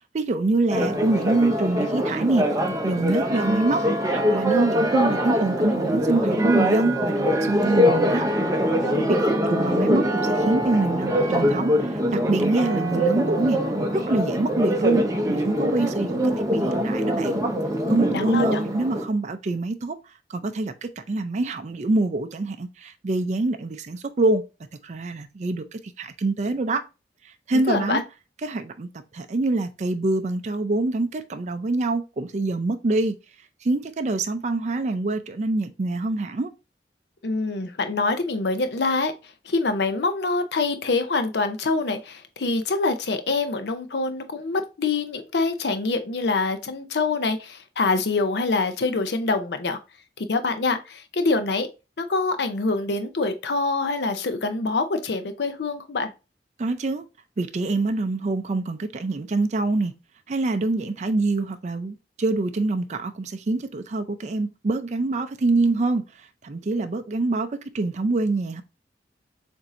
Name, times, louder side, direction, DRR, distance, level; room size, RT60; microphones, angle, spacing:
voice 1, 0.1-2.5 2.8-3.8 4.1-8.3 9.1-13.6 13.9-17.4 17.9-20.0 20.3-24.4 24.8-26.8 27.2-28.0 28.4-28.9 29.1-33.1 33.6-36.5 56.6-57.0 57.4-59.9 60.3-68.6, right 2 dB, 40° right, 0.4 m, -25 dB
Church bell, 0.7-19.1, equal, 20° right, 0.8 m, -23 dB
voice 2, 8.8-9.1 17.9-18.6 27.7-28.0 37.2-39.1 39.4-49.8 50.2-51.7 52.0-56.1, left 3 dB, 70° left, 0.6 m, -25 dB
7.1 x 2.6 x 2.5 m
head